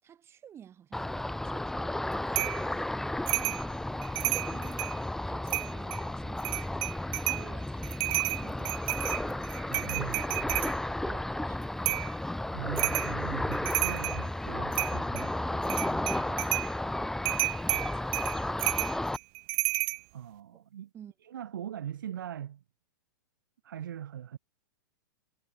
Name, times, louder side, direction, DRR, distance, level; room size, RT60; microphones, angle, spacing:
voice 1, 0.0-2.8 3.4-3.8 4.2-4.9 5.2-6.9 7.2-11.8 17.6-18.8 20.5-20.6 20.9-21.1, right 9 dB, 25° right, 4.9 m, -52 dB
Ocean, 0.9-19.2, left 1 dB, 5° left, 1.5 m, -33 dB
sound 1, 2.4-2.6 3.3-3.6 4.0-5.0 5.5-6.0 6.4-7.5 7.8-10.7 11.9-12.1 12.8-13.1 13.5-14.2 14.7-15.3 15.6-16.7 17.3-20.0, right 40 dB or more, 45° right, 1.9 m, -31 dB
voice 2, 9.7-10.6 12.5-16.6 20.1-20.9 21.2-22.6 23.6-24.4, right 10 dB, 80° right, 2.2 m, -41 dB
hypercardioid pair, 130°, 11 cm